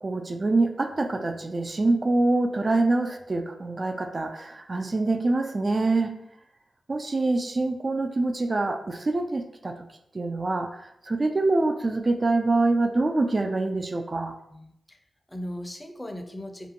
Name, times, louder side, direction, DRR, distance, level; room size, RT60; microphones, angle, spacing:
voice 1, 0.0-6.2 6.9-9.8 10.1-14.4, right 2 dB, 45° right, 5 dB, 0.3 m, -25 dB
voice 2, 14.5-15.0 15.3-16.7, equal, 20° left, 5 dB, 0.4 m, -38 dB
2.5 x 2.1 x 2.8 m, 0.77 s
supercardioid pair, 40°, 0 cm